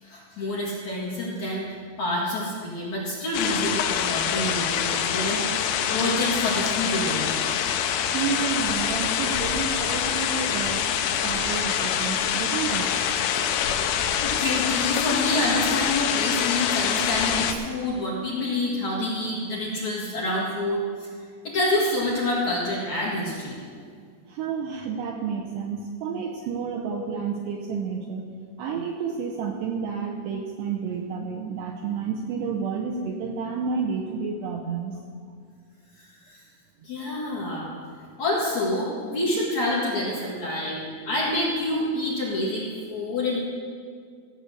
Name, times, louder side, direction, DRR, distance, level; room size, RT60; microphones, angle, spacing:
voice 1, 0.0-7.3 13.9-21.1 21.4-23.6 26.9-27.1 36.3-36.4 36.8-37.7 38.2-43.4, left 1 dB, 55° left, -6 dB, 2.3 m, -27 dB
sound 1, 3.3-17.5, left 9 dB, 80° left, 3.2 m, -25 dB
voice 2, 8.1-12.9 24.3-28.3 28.6-35.0, right 6 dB, 90° right, 1 dB, 2.4 m, -30 dB
16.0 x 8.0 x 6.6 m, 2.1 s
omnidirectional pair, 5.8 m